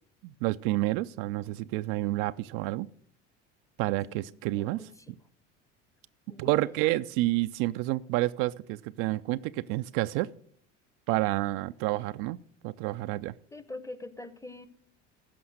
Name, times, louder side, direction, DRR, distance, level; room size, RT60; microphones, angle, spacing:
voice 1, 0.2-2.9 3.8-4.9 6.4-10.3 11.1-12.4 12.6-13.3, right 18 dB, 60° right, 12 dB, 0.4 m, -29 dB
voice 2, 3.9-4.9 6.3-6.7 13.5-14.7, left 2 dB, 10° left, 14 dB, 0.8 m, -44 dB
14.5 x 5.4 x 6.4 m, 0.62 s
hypercardioid pair, 70°, 37 cm